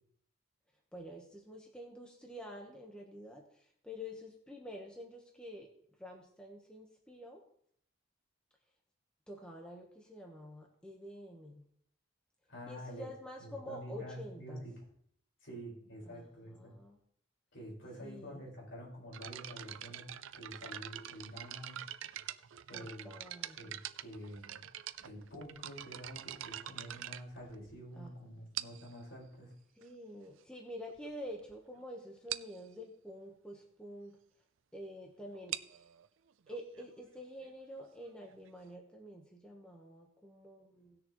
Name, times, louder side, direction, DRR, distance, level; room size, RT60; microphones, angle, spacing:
voice 1, 0.9-5.7 6.0-7.4 9.3-11.6 12.7-14.7 16.1-17.0 18.0-18.4 22.7-23.6 28.0-28.2 29.8-34.2 34.7-35.9 36.5-41.0, equal, 5° left, 0 dB, 1.1 m, -48 dB
voice 2, 12.5-13.1 13.4-14.7 15.4-16.7 17.5-20.1 20.3-21.8 22.7-23.1 23.6-24.6 25.0-29.5, equal, 65° left, -3 dB, 4.8 m, -48 dB
sound 1, 19.1-28.0 28.5-29.0 29.8-29.9 30.5-30.6 30.9-31.1 31.4-31.5 31.8-31.9 32.3-32.6 35.3-38.8, right 12 dB, 75° right, 0.5 m, -45 dB
18.0 x 6.7 x 3.1 m, 0.67 s
head